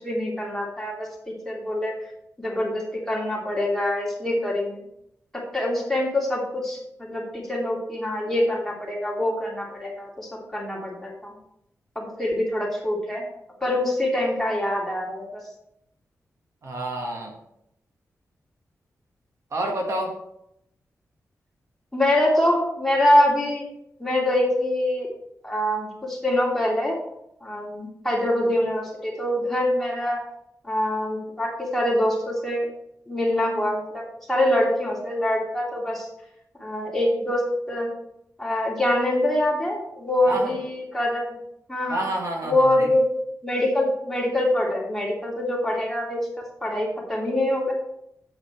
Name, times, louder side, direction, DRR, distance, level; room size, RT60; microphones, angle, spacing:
voice 1, 0.0-1.9 2.4-4.8 5.3-11.4 11.9-13.2 13.6-15.4 21.9-23.6 24.0-25.1 25.4-27.0 27.4-30.2 30.6-32.7 33.1-36.1 36.6-37.9 38.4-41.4 41.7-42.0 42.4-43.1 43.4-46.3 46.6-47.7, left 1 dB, 5° left, -4 dB, 2.9 m, -24 dB
voice 2, 16.6-17.3 19.5-20.1 40.3-40.5 41.9-42.9, right 1 dB, 60° right, 1 dB, 1.8 m, -28 dB
8.5 x 7.9 x 4.5 m, 0.78 s
wide cardioid pair, 120°, 6 cm